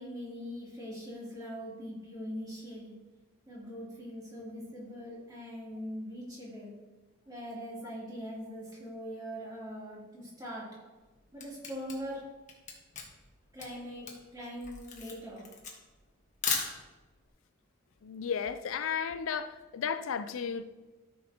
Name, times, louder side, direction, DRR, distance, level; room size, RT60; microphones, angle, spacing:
voice 1, 0.0-3.0 3.5-6.7 7.3-10.7 11.3-12.3 13.5-15.5, equal, 20° right, 3.2 m, -42 dB
Camera, 11.0-17.2, left 5 dB, 35° left, 1.4 m, -38 dB
voice 2, 18.0-20.6, left 7 dB, 75° left, 0.4 m, -34 dB
13.5 x 6.6 x 3.0 m
head